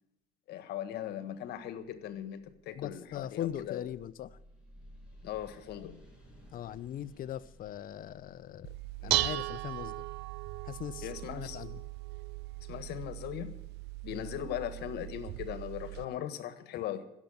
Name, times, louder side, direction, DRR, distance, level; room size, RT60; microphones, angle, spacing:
voice 1, 0.5-3.8 5.2-6.0 9.0-9.3 11.0-11.6 12.6-13.6 14.0-17.0, left 11 dB, 75° left, 11 dB, 1.5 m, -39 dB
sound 1, 2.4-12.4, equal, 5° right, 7.1 m, -58 dB
voice 2, 2.8-4.3 6.5-8.7 9.0-10.0 10.6-11.1 11.4-11.8 14.1-14.3, left 11 dB, 55° left, 16 dB, 0.7 m, -40 dB
Dishes pots and pans, 8.6-16.0, right 18 dB, 80° right, 0.4 m, -37 dB
16.0 x 7.3 x 7.9 m, 0.89 s
cardioid pair, 110°, 17 cm